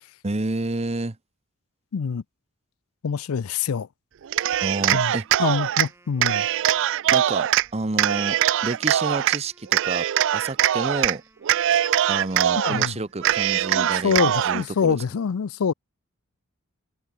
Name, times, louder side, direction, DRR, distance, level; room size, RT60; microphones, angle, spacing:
voice 1, 0.2-1.2 4.6-5.3 7.1-10.1 10.3-11.2 12.1-15.0, right 2 dB, 30° right, 1.0 m, -29 dB
voice 2, 1.9-2.2 3.0-3.9 4.9-5.1 5.4-6.5 12.6-13.0 13.7-15.7, left 6 dB, 70° left, 0.5 m, -25 dB
Cheering, 4.3-5.9 6.2-7.7 8.0-9.4 9.7-11.2 11.4-12.9 13.2-14.6, right 11 dB, 60° right, 0.4 m, -22 dB
Wind instrument woodwind instrument, 5.4-13.4, right 1 dB, 10° right, 5.0 m, -59 dB
head